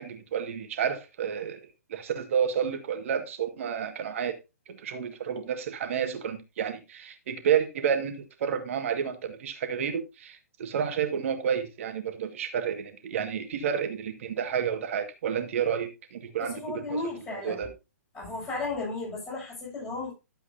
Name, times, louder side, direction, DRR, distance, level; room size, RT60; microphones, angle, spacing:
voice 1, 0.0-1.6 1.9-4.4 4.7-17.0 17.3-17.7, right 8 dB, 50° right, 1.9 m, -30 dB
voice 2, 16.4-17.7 18.1-20.1, left 3 dB, 20° left, 6.7 m, -34 dB
12.5 x 7.8 x 2.7 m
figure-of-eight pair, 120°, 9 cm